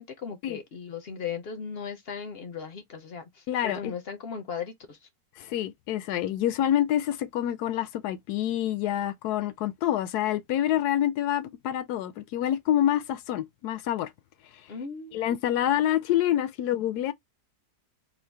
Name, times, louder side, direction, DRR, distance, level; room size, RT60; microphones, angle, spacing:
voice 1, 0.0-5.1 14.7-15.2, left 6 dB, 60° left, 0.6 m, -37 dB
voice 2, 3.5-3.9 5.4-14.1 15.1-17.1, left 11 dB, 80° left, 1.1 m, -27 dB
3.8 x 2.1 x 3.2 m
omnidirectional pair, 1.7 m